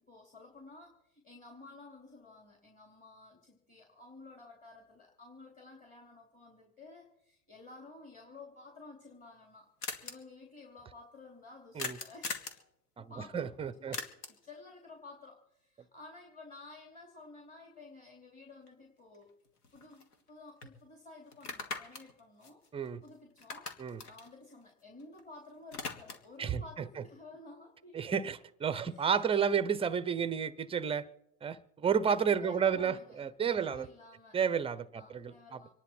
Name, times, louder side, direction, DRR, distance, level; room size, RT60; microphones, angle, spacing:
voice 1, 0.0-9.7 10.0-12.3 13.1-13.5 13.8-19.3 19.7-22.6 23.0-23.7 24.1-28.2 28.8-29.6 32.4-34.4 34.9-35.7, left 3 dB, 15° left, 0 dB, 2.9 m, -53 dB
sound 1, 8.9-9.0 9.1-9.2 9.4-9.5 9.8-10.1 11.8-12.6 13.9-14.5 18.7-18.8 19.1-20.3 20.6-20.7 21.3-23.1 23.4-25.2 25.5-26.4, left 4 dB, 85° left, 2.4 m, -41 dB
voice 2, 13.3-14.0 22.7-23.0 23.8-24.0 26.4-26.6 27.9-31.0 31.4-33.9 34.3-35.6, right 7 dB, 10° right, 15 dB, 0.6 m, -31 dB
26.0 x 11.0 x 4.4 m, 0.80 s
hypercardioid pair, 120°, 45 cm